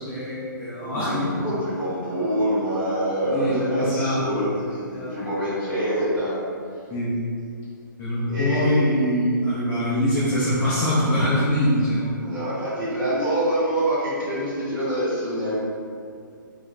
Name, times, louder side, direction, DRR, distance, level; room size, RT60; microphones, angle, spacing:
voice 1, 0.0-1.3 3.3-4.5 5.0-5.1 6.9-7.2 8.0-12.2, equal, 15° left, -11 dB, 0.5 m, -23 dB
voice 2, 0.8-6.5 8.3-8.8 12.2-15.6, equal, 15° right, -10 dB, 0.9 m, -26 dB
2.7 x 2.5 x 3.2 m, 2.3 s
figure-of-eight pair, 125°, 11 cm